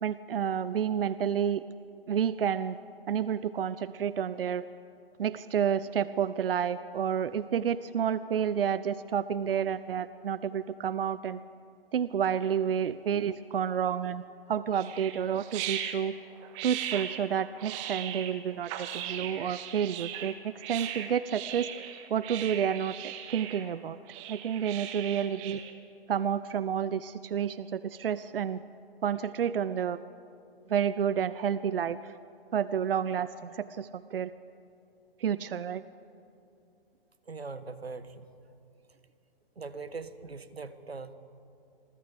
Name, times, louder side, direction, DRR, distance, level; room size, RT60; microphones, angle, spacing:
voice 1, 0.0-1.6 2.1-2.8 3.1-4.6 5.2-11.4 11.9-14.2 14.5-16.1 16.6-21.7 22.1-24.0 24.3-25.6 26.1-28.6 29.0-30.0 30.7-32.0 32.5-34.3 35.2-35.8, right 8 dB, 65° right, 16 dB, 0.7 m, -30 dB
sound 1, 14.7-25.7, right 10 dB, 30° right, 1.9 m, -39 dB
voice 2, 37.3-38.3 39.6-41.1, right 4 dB, 85° right, 12 dB, 1.5 m, -41 dB
27.5 x 23.0 x 5.2 m, 2.7 s
figure-of-eight pair, 130°, 30 cm